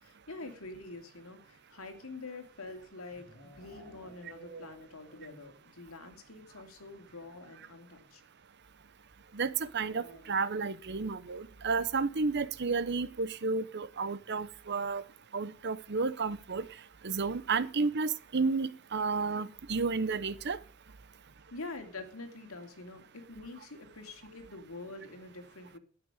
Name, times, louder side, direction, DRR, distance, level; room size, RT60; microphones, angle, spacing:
voice 1, 0.0-8.2 21.5-25.8, left 3 dB, 80° left, 5 dB, 2.7 m, -46 dB
sound 1, 2.5-5.6 5.9-6.0 6.3-6.4 6.6-6.8 8.0-8.1 9.8-10.7, right 2 dB, 50° left, 6.6 m, -53 dB
voice 2, 9.3-15.0 15.3-16.7 17.0-20.6, right 4 dB, 55° right, 16 dB, 0.8 m, -32 dB
12.5 x 9.3 x 5.0 m, 0.39 s
head